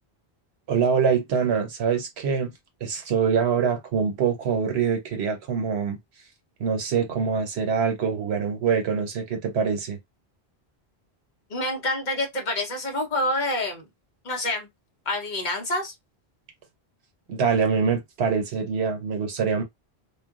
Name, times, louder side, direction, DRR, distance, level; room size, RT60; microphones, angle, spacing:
voice 1, 0.7-2.5 2.8-6.0 6.6-10.0 17.3-19.6, right 6 dB, 80° right, 1.1 m, -24 dB
voice 2, 11.5-13.8 14.2-14.7 15.1-15.9, left 1 dB, 50° left, 0.8 m, -27 dB
2.3 x 2.2 x 3.6 m
omnidirectional pair, 1.1 m